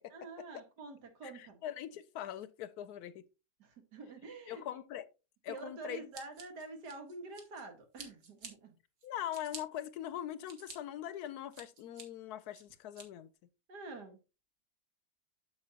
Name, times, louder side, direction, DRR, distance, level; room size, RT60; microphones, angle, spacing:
voice 1, 0.1-1.6 3.6-4.8 5.5-8.8 13.7-14.2, right 3 dB, 75° right, 2.2 m, -47 dB
voice 2, 1.2-3.3 4.5-5.0 5.4-6.0 9.0-13.3, left 11 dB, 75° left, 1.1 m, -42 dB
Scissors, 6.1-7.6 8.0-8.5 9.0-9.6 10.2-10.8 11.2-12.0 12.5-13.1, right 4 dB, 60° right, 2.1 m, -50 dB
8.0 x 7.2 x 2.8 m
omnidirectional pair, 1.8 m